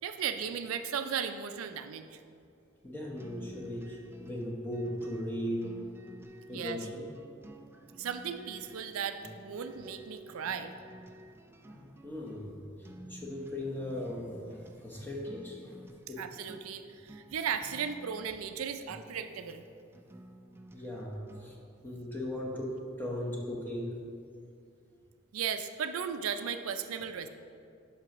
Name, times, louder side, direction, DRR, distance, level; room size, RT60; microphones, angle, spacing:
voice 1, 0.0-2.2 6.5-6.8 8.0-10.7 16.2-19.6 25.3-27.3, right 7 dB, 90° right, 9 dB, 0.4 m, -36 dB
voice 2, 2.8-5.9 6.5-7.1 11.7-12.5 12.8-15.8 16.1-16.3 20.7-24.0, left 1 dB, 10° left, -2 dB, 1.0 m, -38 dB
sound 1, 3.2-21.7, right 1 dB, 10° right, 0.3 m, -53 dB
10.5 x 5.9 x 3.0 m, 2.5 s
head